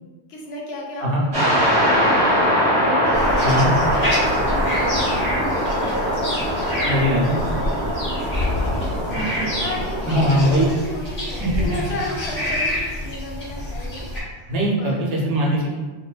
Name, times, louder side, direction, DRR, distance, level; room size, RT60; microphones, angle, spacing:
voice 1, 0.3-2.4 2.7-9.2 9.6-14.5 14.8-15.0, left 1 dB, 65° left, -2 dB, 0.8 m, -33 dB
sound 1, 1.3-10.7, equal, 25° right, 0.6 m, -22 dB
sound 2, 3.1-14.2, left 1 dB, 40° left, 0.8 m, -27 dB
voice 2, 3.4-3.7 6.8-7.4 10.1-10.7 11.4-11.5 14.5-15.8, equal, 70° right, -3 dB, 0.8 m, -20 dB
2.6 x 2.1 x 2.3 m, 1.4 s
omnidirectional pair, 1.2 m